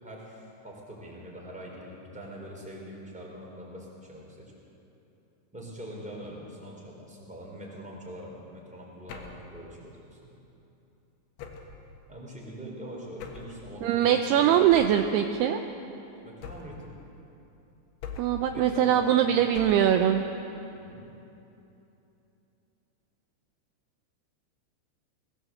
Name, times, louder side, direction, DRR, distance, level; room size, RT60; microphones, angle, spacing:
voice 1, 0.0-4.4 5.5-10.3 12.1-14.8 16.2-16.9 18.5-19.6 20.8-21.1, equal, ahead, -3 dB, 3.7 m, -43 dB
sound 1, 9.1-9.5 11.4-11.8 13.2-13.6 14.7-15.1 16.4-16.9 18.0-18.5 19.5-20.0, left 6 dB, 85° left, 4.0 m, -42 dB
voice 2, 13.8-15.6 18.2-20.2, right 10 dB, 80° right, 6 dB, 2.5 m, -22 dB
21.0 x 16.5 x 7.8 m, 2.9 s
omnidirectional pair, 5.2 m